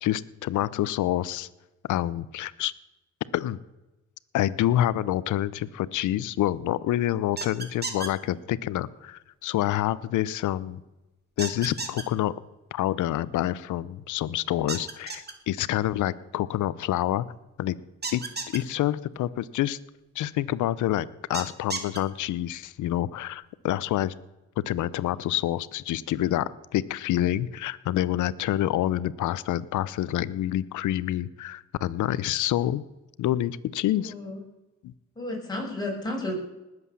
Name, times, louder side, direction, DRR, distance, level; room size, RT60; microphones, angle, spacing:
voice 1, 0.0-1.5 1.9-2.7 3.3-3.6 4.3-10.8 11.4-12.3 12.7-17.3 17.6-17.8 18.1-18.2 18.5-19.8 20.1-24.1 24.6-32.8 33.2-34.1 34.8-34.9, left 13 dB, 75° left, 18 dB, 0.8 m, -27 dB
sound 1, 7.4-8.1 11.4-12.0 14.7-15.3 18.0-18.6 21.3-22.0, right 4 dB, 35° right, 2.5 m, -32 dB
voice 2, 34.0-34.4 35.2-36.3, left 2 dB, 15° left, -3 dB, 6.9 m, -32 dB
19.5 x 8.1 x 7.1 m, 1.0 s
cardioid pair, 90°, 30 cm